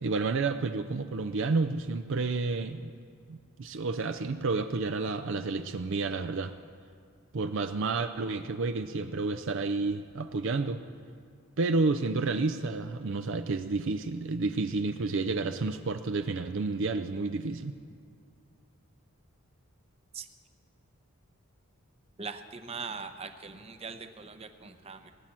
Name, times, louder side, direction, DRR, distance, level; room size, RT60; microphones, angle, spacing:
voice 1, 0.0-2.9 3.3-6.5 7.3-10.8 11.6-17.7, right 3 dB, 55° right, 8 dB, 0.5 m, -30 dB
voice 2, 22.2-25.1, right 5 dB, 25° right, 8 dB, 0.7 m, -41 dB
18.5 x 9.1 x 7.4 m, 2.2 s
head